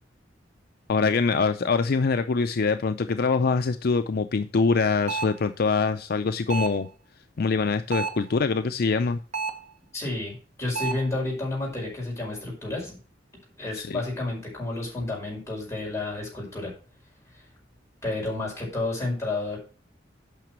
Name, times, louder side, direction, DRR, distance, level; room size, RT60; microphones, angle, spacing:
voice 1, 0.9-6.9 7.4-9.2 13.8-14.0, left 4 dB, 55° left, 9 dB, 0.5 m, -24 dB
sound 1, 5.1-5.4 6.5-6.9 7.9-8.3 9.3-9.7 10.7-11.1, right 4 dB, 40° right, 1.2 m, -31 dB
voice 2, 9.9-13.0 13.6-16.7 17.3-17.4 18.0-19.6, left 2 dB, 15° left, -3 dB, 5.5 m, -31 dB
9.1 x 5.9 x 6.1 m, 0.38 s
head